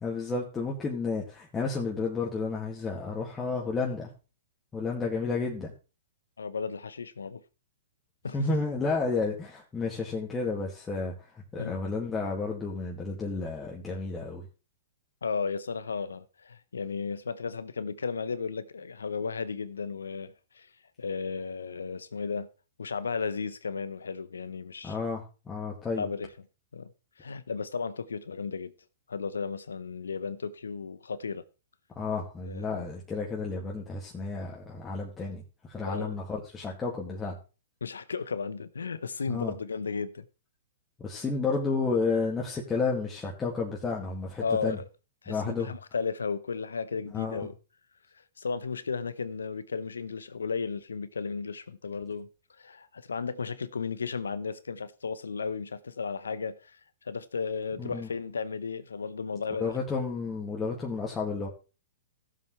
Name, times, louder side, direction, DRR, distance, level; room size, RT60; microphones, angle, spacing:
voice 1, 0.0-4.1 4.7-5.7 8.3-14.5 24.8-26.1 31.9-37.4 39.3-39.5 41.0-44.8 45.3-45.7 47.1-47.5 57.8-58.1 59.6-61.5, left 4 dB, 15° left, 2.1 m, -31 dB
voice 2, 6.4-7.4 8.2-8.4 11.6-11.8 15.2-20.7 21.0-22.5 22.8-25.0 26.0-26.3 26.7-26.9 27.2-28.7 29.1-31.4 32.5-32.8 35.8-36.1 37.8-40.3 44.4-44.8 45.2-47.5 48.4-52.3 52.6-56.8 57.0-59.8, left 5 dB, 85° left, 0.8 m, -34 dB
17.0 x 7.5 x 3.2 m
hypercardioid pair, 115°, 0 cm